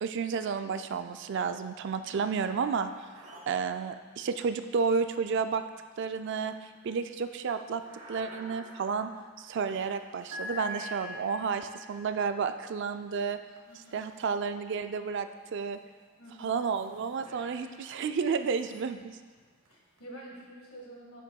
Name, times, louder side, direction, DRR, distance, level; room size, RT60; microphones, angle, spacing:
voice 1, 0.0-2.9 3.5-5.6 6.0-6.5 6.8-7.8 8.1-9.1 9.4-13.4 13.9-15.8 16.4-19.2, right 5 dB, 55° right, 9 dB, 0.3 m, -31 dB
sound 1, 0.7-1.4 1.7-14.9 15.5-20.0, equal, 75° right, 1.0 m, -49 dB
voice 2, 13.7-14.1 16.2-16.7 17.2-17.3 19.7-21.2, right 1 dB, 85° left, -2 dB, 1.6 m, -48 dB
8.7 x 7.1 x 2.3 m, 1.5 s
head